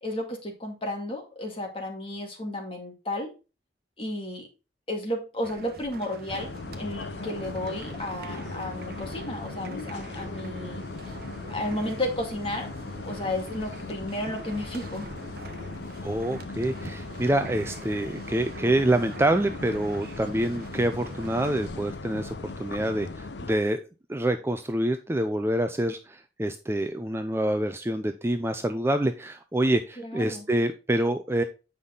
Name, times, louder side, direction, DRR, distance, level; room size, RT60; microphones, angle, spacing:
voice 1, 0.0-3.3 4.0-4.5 4.9-11.1 11.5-12.7 13.0-15.1 30.0-30.4, left 1 dB, 30° left, 2 dB, 2.3 m, -33 dB
sound 1, 5.4-21.7, right 2 dB, 55° right, 1.0 m, -45 dB
sound 2, 6.3-23.5, left 3 dB, 75° left, 0.8 m, -38 dB
voice 2, 16.0-23.8 24.1-31.4, right 1 dB, 15° right, 8 dB, 0.5 m, -26 dB
8.4 x 5.5 x 3.7 m, 0.30 s
head